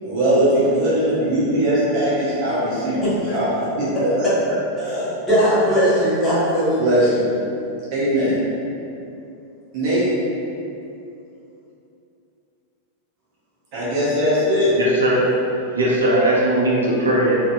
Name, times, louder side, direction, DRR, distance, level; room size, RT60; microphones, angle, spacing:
voice 1, 0.0-3.5 3.8-4.3 4.8-5.0 6.8-7.3 7.9-8.4 9.7-10.1 13.7-14.7, equal, 45° right, -9 dB, 0.7 m, -20 dB
voice 2, 3.0-3.4 4.8-6.8, equal, 15° left, -11 dB, 1.1 m, -19 dB
voice 3, 14.7-17.4, right 1 dB, 70° right, -5 dB, 0.4 m, -19 dB
2.6 x 2.5 x 2.3 m, 2.7 s
figure-of-eight pair, 90°, 0 cm